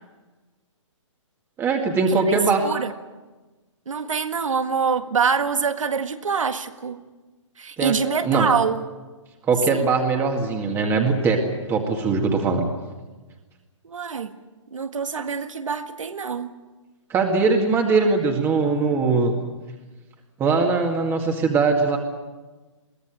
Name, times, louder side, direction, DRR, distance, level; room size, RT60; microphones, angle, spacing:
voice 1, 1.6-2.6 7.8-7.9 8.2-8.5 9.5-12.6 17.1-19.3 20.4-22.0, right 4 dB, 15° right, 2 dB, 2.0 m, -21 dB
voice 2, 2.1-2.9 3.9-7.0 7.6-8.8 9.7-9.9 13.8-14.3 14.7-16.5, right 6 dB, 80° right, 9 dB, 1.8 m, -25 dB
22.5 x 16.0 x 9.0 m, 1.2 s
hypercardioid pair, 145°, 16 cm